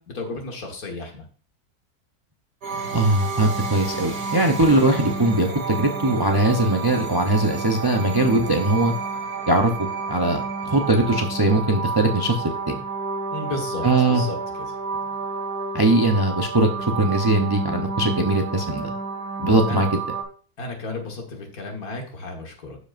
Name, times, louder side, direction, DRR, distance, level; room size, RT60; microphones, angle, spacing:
voice 1, 0.1-1.2 13.3-14.4 19.7-19.8 20.6-22.8, left 3 dB, 65° left, 2 dB, 1.9 m, -33 dB
sound 1, 2.6-20.2, right 4 dB, 80° right, 2.4 m, -30 dB
voice 2, 2.9-8.9 9.5-9.7 10.1-12.7 13.8-14.2 15.7-18.9 19.4-20.0, right 2 dB, 35° right, 3 dB, 0.4 m, -20 dB
12.5 x 5.1 x 2.5 m, 0.41 s
omnidirectional pair, 1.7 m